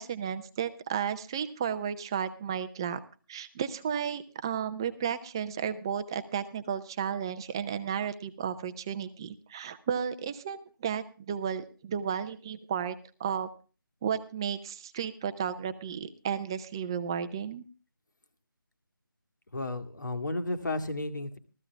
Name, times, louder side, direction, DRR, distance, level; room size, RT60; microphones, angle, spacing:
voice 1, 0.0-3.0 3.3-13.5 14.0-17.6, right 8 dB, 10° right, 11 dB, 0.5 m, -33 dB
voice 2, 19.5-21.4, left 2 dB, 55° left, 6 dB, 2.1 m, -33 dB
15.0 x 14.5 x 3.5 m, 0.36 s
figure-of-eight pair, 160°, 12 cm